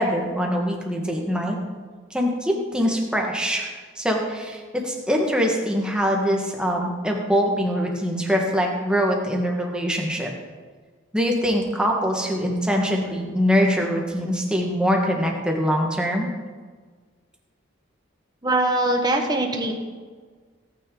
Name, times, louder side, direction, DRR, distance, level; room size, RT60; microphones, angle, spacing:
voice 1, 0.0-1.6 2.1-10.3 11.1-16.3, equal, 5° right, 0 dB, 1.7 m, -23 dB
voice 2, 18.4-19.7, right 2 dB, 20° right, 3 dB, 1.4 m, -22 dB
18.0 x 9.3 x 3.9 m, 1.5 s
head